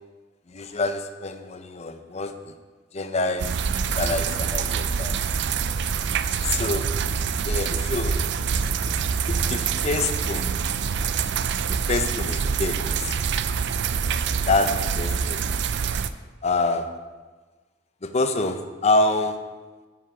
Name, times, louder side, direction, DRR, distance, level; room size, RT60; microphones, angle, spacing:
voice 1, 0.5-2.5 2.9-3.7 4.0-5.1 6.5-6.9 7.4-10.5 11.7-13.1 14.4-15.4 16.4-16.9 18.0-19.4, left 2 dB, 35° left, 8 dB, 0.6 m, -27 dB
sound 1, 3.4-16.1, right 6 dB, 65° right, 0.4 m, -26 dB
9.8 x 5.8 x 4.7 m, 1.3 s
head